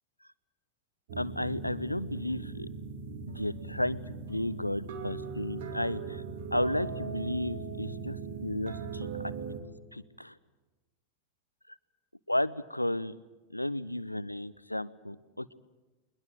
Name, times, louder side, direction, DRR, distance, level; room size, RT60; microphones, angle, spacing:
sound 1, 1.1-9.6, right 5 dB, 55° right, 2.6 m, -39 dB
voice 1, 1.2-2.7 3.3-4.0 4.3-6.2 6.5-9.3 9.9-10.4 12.3-13.2 13.5-15.5, left 1 dB, 85° left, 18 dB, 0.6 m, -33 dB
21.5 x 21.0 x 7.9 m, 1.2 s
figure-of-eight pair, 90°, 0 cm